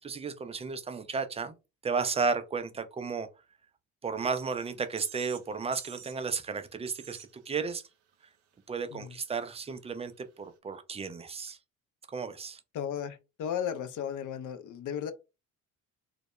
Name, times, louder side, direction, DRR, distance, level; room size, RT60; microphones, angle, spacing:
voice 1, 0.0-1.5 1.8-3.3 4.0-7.8 8.7-11.6 12.1-12.6, right 5 dB, 15° right, 0.4 m, -33 dB
sound 1, 4.6-4.7 5.0-5.5 5.7-6.2 6.9-7.3, right 9 dB, 75° right, 0.6 m, -47 dB
voice 2, 12.7-15.1, left 8 dB, 50° left, 0.5 m, -35 dB
2.1 x 2.1 x 2.9 m
hypercardioid pair, 50°, 41 cm